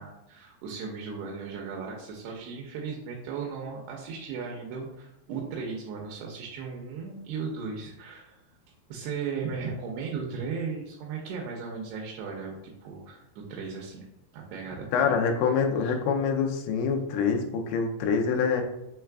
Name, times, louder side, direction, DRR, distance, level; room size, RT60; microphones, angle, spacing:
voice 1, 0.0-8.4 8.9-14.1 14.3-15.2 15.8-15.9, right 5 dB, 85° right, -1 dB, 2.4 m, -36 dB
voice 2, 14.9-18.6, left 6 dB, 85° left, 3 dB, 2.9 m, -25 dB
6.6 x 3.2 x 2.3 m, 0.85 s
omnidirectional pair, 5.2 m